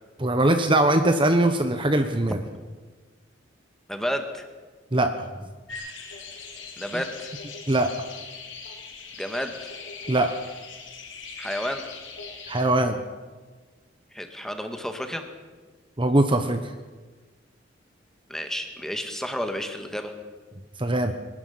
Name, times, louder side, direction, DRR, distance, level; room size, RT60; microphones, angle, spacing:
voice 1, 0.2-2.4 4.9-5.1 7.7-7.9 10.1-10.3 12.5-13.0 16.0-16.6 20.8-21.1, right 1 dB, 25° right, 7 dB, 1.1 m, -21 dB
voice 2, 3.9-4.5 6.8-7.3 9.2-9.5 11.4-11.8 14.1-15.2 18.3-20.1, equal, 5° left, 6 dB, 1.9 m, -31 dB
sound 1, 5.7-12.6, left 4 dB, 80° left, 4.3 m, -40 dB
22.5 x 12.5 x 9.6 m, 1.3 s
head